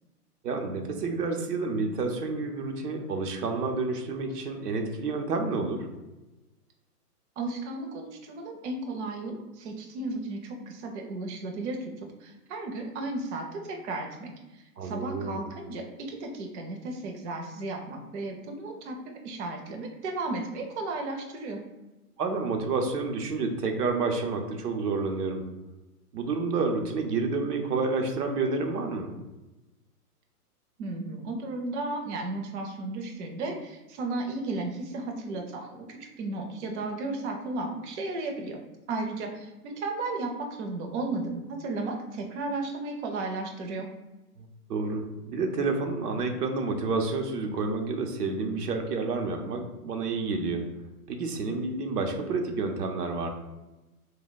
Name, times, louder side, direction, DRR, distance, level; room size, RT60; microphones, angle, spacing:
voice 1, 0.4-5.9 14.8-15.5 22.2-25.4 26.1-29.1 44.4-44.5 44.7-50.6 51.1-53.3, right 3 dB, 85° right, 3 dB, 0.7 m, -29 dB
voice 2, 7.4-11.9 12.2-21.6 30.8-38.6 38.9-43.9, right 2 dB, 50° right, 2 dB, 0.6 m, -34 dB
2.8 x 2.2 x 4.0 m, 1.0 s
hypercardioid pair, 140°, 46 cm